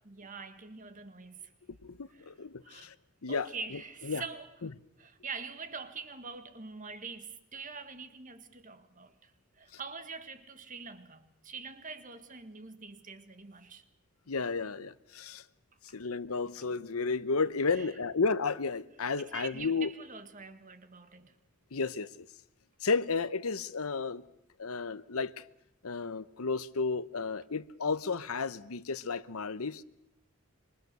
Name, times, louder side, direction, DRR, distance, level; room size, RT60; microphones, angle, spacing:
voice 1, 0.0-1.5 2.1-2.2 2.6-2.9 3.3-4.5 5.0-9.3 9.6-13.8 17.7-17.9 19.2-21.3, right 4 dB, 35° right, 1.7 m, -44 dB
voice 2, 1.8-2.9 3.2-4.2 4.6-4.7 14.3-15.4 15.9-19.9 21.7-22.3 22.8-24.2 24.6-25.4 25.8-29.8, left 4 dB, 85° left, 0.9 m, -33 dB
26.0 x 24.0 x 6.8 m
head